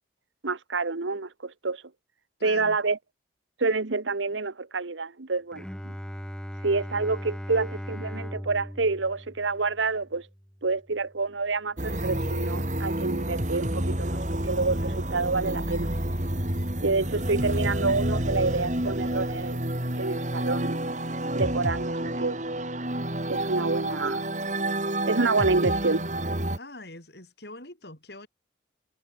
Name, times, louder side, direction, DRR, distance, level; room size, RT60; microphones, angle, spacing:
voice 1, 0.4-1.8 2.4-3.0 3.6-5.9 6.6-10.3 10.6-15.9 16.8-19.7 20.0-20.8 21.3-22.4 23.3-24.2 25.1-26.0, right 3 dB, 90° right, 1.2 m, -28 dB
voice 2, 2.4-2.8 26.5-28.3, left 2 dB, 60° left, 8.0 m, -43 dB
Bowed string instrument, 5.5-11.2, equal, 5° left, 4.2 m, -39 dB
sound 1, 11.8-26.6, right 1 dB, 40° right, 3.9 m, -29 dB
head